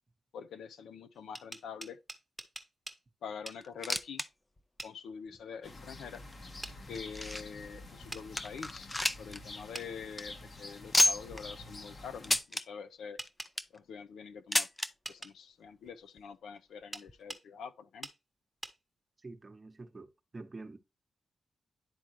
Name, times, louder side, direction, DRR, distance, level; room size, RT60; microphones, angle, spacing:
voice 1, 0.3-2.0 3.2-4.2 4.8-6.2 6.9-8.9 9.2-13.2 13.7-14.7 15.1-18.1, left 6 dB, 85° left, 0.6 m, -45 dB
sound 1, 1.1-3.0 3.5-3.6 4.8-4.9 6.6-6.8 8.1-8.3 9.7-9.9 12.3-12.4 13.2-13.5 15.0-15.3 16.9-17.4 18.0-18.2 18.6-18.8, right 2 dB, 15° right, 1.0 m, -44 dB
sound 2, 3.6-4.3 4.6-4.7 5.3-5.4 6.1-7.6 8.0-8.1 8.4-9.4 9.7-9.8 10.1-10.2 10.9-11.4 12.2-12.6 13.3-13.8 14.5-14.9 15.9-16.0 16.2-16.3 17.1-17.2, left 1 dB, 20° left, 0.6 m, -30 dB
sound 3, 5.6-12.4, left 2 dB, 50° left, 1.2 m, -48 dB
voice 2, 19.2-20.8, right 3 dB, 35° right, 0.9 m, -47 dB
10.5 x 3.7 x 3.0 m
cardioid pair, 65°, 0 cm